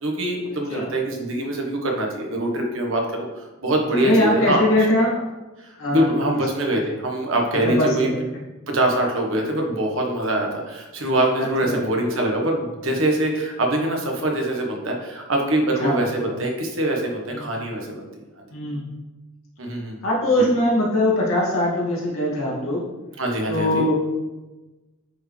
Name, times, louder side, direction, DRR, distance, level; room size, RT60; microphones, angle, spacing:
voice 1, 0.0-4.6 5.7-8.1 8.7-18.0 19.6-20.0 23.2-23.8, right 1 dB, 65° right, 1 dB, 1.3 m, -23 dB
voice 2, 3.7-5.1 5.8-6.4 7.6-8.4 11.4-11.8 15.8-16.4 17.3-17.5 18.5-18.8 20.0-22.8 23.5-24.1, left 1 dB, 70° left, -5 dB, 2.3 m, -22 dB
9.5 x 4.6 x 3.3 m, 1.1 s
head